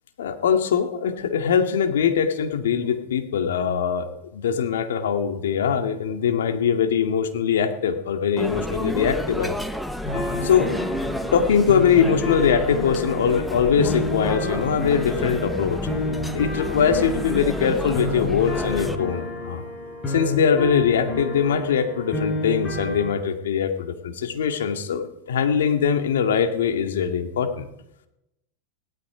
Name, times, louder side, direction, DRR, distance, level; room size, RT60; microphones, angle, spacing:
voice 1, 0.2-9.6 10.4-10.7 11.3-15.8 16.3-19.6 20.1-27.7, left 7 dB, 80° left, 6 dB, 2.2 m, -22 dB
sound 1, 8.4-19.0, equal, ahead, 1.1 m, -30 dB
sound 2, 10.0-23.1, left 2 dB, 25° left, 6.5 m, -30 dB
17.5 x 12.5 x 5.1 m, 0.83 s
hypercardioid pair, 110°, 0 cm